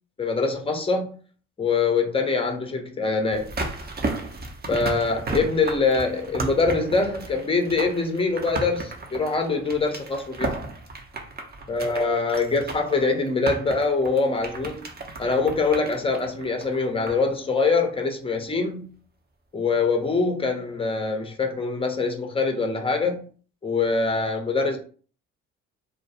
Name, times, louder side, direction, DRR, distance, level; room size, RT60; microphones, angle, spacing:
voice 1, 0.2-1.1 1.6-3.5 4.7-10.6 11.7-14.9 15.2-18.9 19.5-23.2 23.6-24.8, left 4 dB, 15° left, 0.6 m, -24 dB
sound 1, 3.3-17.3 17.6-17.7, right 3 dB, 25° right, 0.6 m, -34 dB
2.2 x 2.2 x 2.8 m
hypercardioid pair, 50°, 38 cm